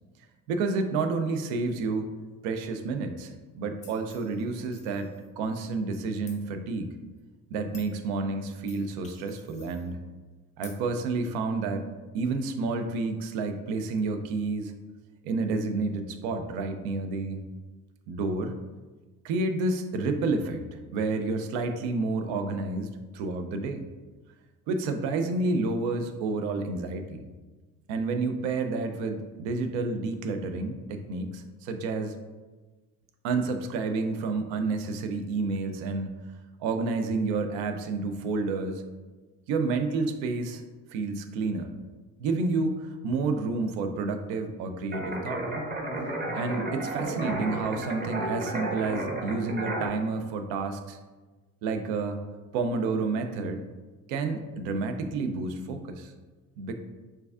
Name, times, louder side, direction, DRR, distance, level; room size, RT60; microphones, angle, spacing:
voice 1, 0.5-2.1 2.4-6.9 7.5-10.0 10.6-11.9 12.1-14.7 15.2-17.4 18.1-18.5 19.2-23.8 24.7-27.3 27.9-32.1 33.2-36.2 36.6-38.8 39.5-40.6 40.9-41.7 42.2-45.5 46.3-51.0 51.6-52.2 52.5-53.6 54.1-56.1 56.6-56.7, right 3 dB, 85° right, 7 dB, 0.5 m, -30 dB
sound 1, 3.8-5.5 6.3-6.4 7.2-7.3 7.7-8.0 8.7-9.9 10.6-10.8, left 5 dB, 20° left, 0.3 m, -52 dB
sound 2, 44.9-49.9, right 1 dB, 20° right, 0.7 m, -32 dB
4.5 x 2.5 x 2.4 m, 1.3 s
supercardioid pair, 75°, 45 cm